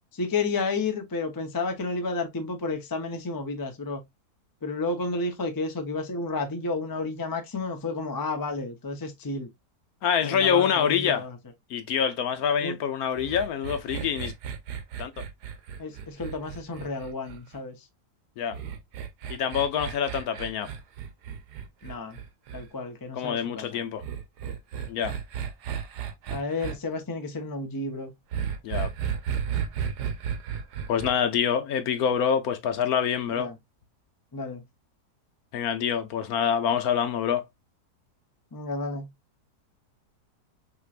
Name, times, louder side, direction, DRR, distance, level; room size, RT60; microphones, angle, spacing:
voice 1, 0.1-4.0 4.6-9.5 10.2-11.3 12.6-12.8 15.8-17.7 21.8-22.2 22.5-23.8 26.3-28.1 33.4-33.5 34.3-34.6 38.5-39.1, left 3 dB, 30° left, 0.4 m, -31 dB
voice 2, 10.0-11.3 11.7-14.3 15.0-15.2 18.4-18.6 19.3-20.7 23.1-24.0 24.9-25.1 28.6-28.9 30.9-33.5 35.5-37.4, left 8 dB, 70° left, 1.1 m, -26 dB
sound 1, 13.2-17.6 18.5-22.7 24.0-26.7 28.3-31.1, right 8 dB, 75° right, 1.3 m, -34 dB
6.0 x 3.0 x 2.4 m
omnidirectional pair, 1.8 m